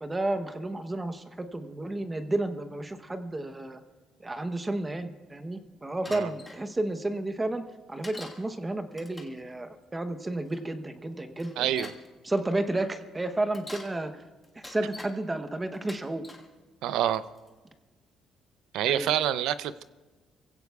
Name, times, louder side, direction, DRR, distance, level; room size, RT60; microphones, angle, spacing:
voice 1, 0.0-3.8 4.2-7.6 7.9-11.9 12.2-14.2 14.6-16.2 18.8-19.1, right 2 dB, 15° right, 9 dB, 0.9 m, -32 dB
Bicycle, 6.0-6.6 8.0-8.4 8.9-9.4 10.5-10.6 11.4-12.1 13.4-13.9 14.4-15.1 15.7-16.5 17.1-17.5, left 1 dB, 10° left, 1.6 m, -44 dB
voice 2, 11.6-11.9 16.8-17.2 18.7-19.8, right 11 dB, 85° right, 14 dB, 0.5 m, -27 dB
29.0 x 16.0 x 2.4 m, 1.2 s
cardioid pair, 130°, 0 cm